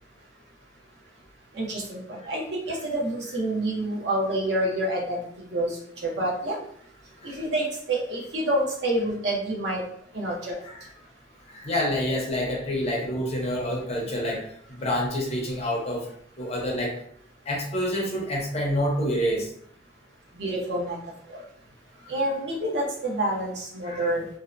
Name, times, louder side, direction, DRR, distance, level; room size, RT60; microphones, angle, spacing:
voice 1, 1.5-6.6 7.2-9.8 10.1-10.6 20.3-21.4 22.1-24.3, right 1 dB, 60° right, -3 dB, 0.7 m, -28 dB
voice 2, 11.5-16.0 16.4-17.0 17.5-19.5 23.8-24.0, equal, 35° left, -2 dB, 0.5 m, -27 dB
2.7 x 2.0 x 2.4 m, 0.67 s
head